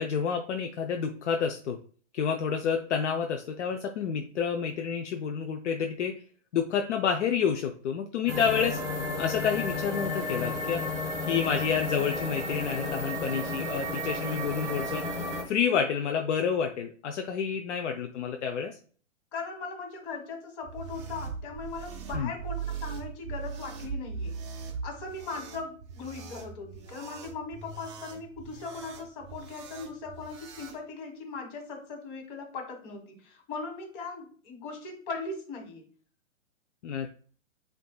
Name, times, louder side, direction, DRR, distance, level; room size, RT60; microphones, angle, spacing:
voice 1, 0.0-1.8 2.1-6.1 6.5-8.8 9.2-10.8 11.2-15.1 15.5-18.8 22.1-22.3 36.8-37.1, left 7 dB, 65° left, 4 dB, 0.6 m, -29 dB
sound 1, 8.3-15.4, left 2 dB, 10° right, 1.3 m, -33 dB
voice 2, 19.3-24.4 24.8-35.8, left 4 dB, 40° left, 3 dB, 1.6 m, -39 dB
sound 2, 20.6-30.8, right 5 dB, 25° right, 0.3 m, -40 dB
7.8 x 2.7 x 2.2 m, 0.44 s
hypercardioid pair, 120°, 39 cm